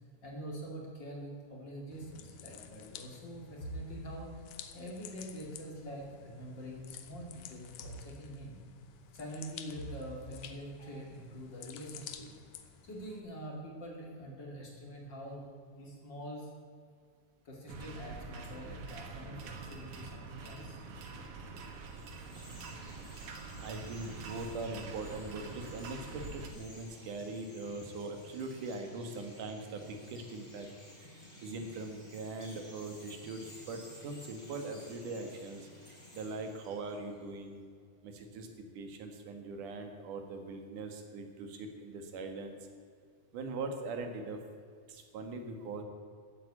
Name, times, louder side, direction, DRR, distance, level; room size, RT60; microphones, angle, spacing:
voice 1, 0.2-4.4 4.7-8.6 9.1-12.3 12.8-15.4 15.7-16.5 17.4-20.8, equal, 35° left, -1 dB, 2.9 m, -44 dB
sound 1, 1.9-13.2, left 9 dB, 75° left, 2.3 m, -51 dB
sound 2, 17.7-26.5, right 4 dB, 55° right, 1.9 m, -45 dB
Chirp tweet, 21.7-37.3, left 1 dB, 10° left, 3.4 m, -54 dB
voice 2, 23.6-30.7 31.0-35.7 36.1-37.6 38.0-38.5 38.7-42.6 43.3-44.4 44.9-45.8, right 3 dB, 75° right, 5 dB, 3.1 m, -41 dB
14.5 x 8.6 x 8.5 m, 2.1 s
omnidirectional pair, 3.7 m